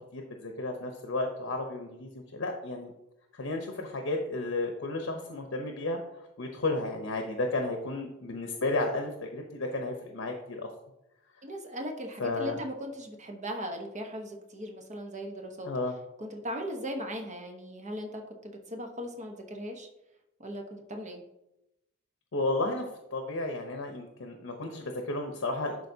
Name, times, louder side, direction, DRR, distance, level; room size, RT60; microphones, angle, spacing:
voice 1, 0.0-2.9 3.3-10.7 12.2-12.6 15.6-15.9 22.3-22.8 23.1-25.9, left 2 dB, 85° left, 3 dB, 0.8 m, -33 dB
voice 2, 11.4-15.7 16.2-19.9 20.4-21.2, equal, 40° right, 3 dB, 1.0 m, -38 dB
11.0 x 4.1 x 2.7 m, 0.88 s
head